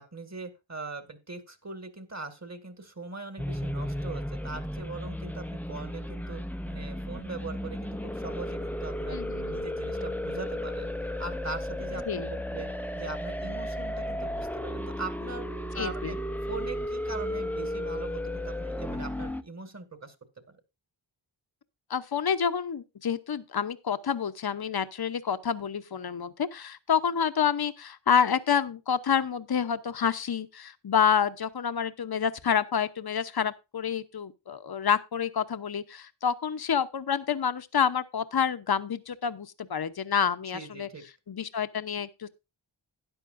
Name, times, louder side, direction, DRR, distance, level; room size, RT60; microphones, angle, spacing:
voice 1, 0.0-10.9 11.2-16.2 16.5-20.2 20.5-20.6 40.5-41.0, right 3 dB, 35° right, 2.1 m, -41 dB
sound 1, 3.4-19.4, left 1 dB, 5° left, 0.6 m, -34 dB
voice 2, 9.1-9.6 12.1-12.3 15.8-16.2 21.9-40.9 41.3-42.3, left 7 dB, 50° left, 0.9 m, -28 dB
12.5 x 9.8 x 2.6 m
wide cardioid pair, 55°, 47 cm